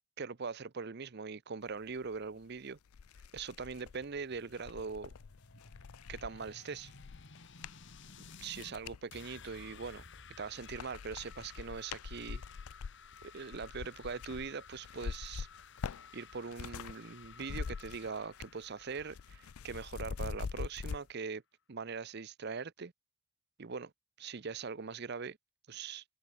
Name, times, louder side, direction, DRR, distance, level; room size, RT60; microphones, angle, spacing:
voice 1, 0.2-2.8 3.3-5.1 6.1-6.9 8.4-10.0 10.4-12.4 13.2-15.5 16.1-21.4 21.7-22.9 23.6-23.9 24.2-25.4 25.7-26.0, right 5 dB, 50° right, 0.6 m, -41 dB
sound 1, 2.4-2.5 2.9-9.0 9.6-10.2 10.5-17.0 17.2-18.6 18.9-21.0, left 5 dB, 85° left, 0.5 m, -44 dB
sound 2, 4.4-8.7 9.1-20.7, left 5 dB, 55° left, 1.9 m, -55 dB
head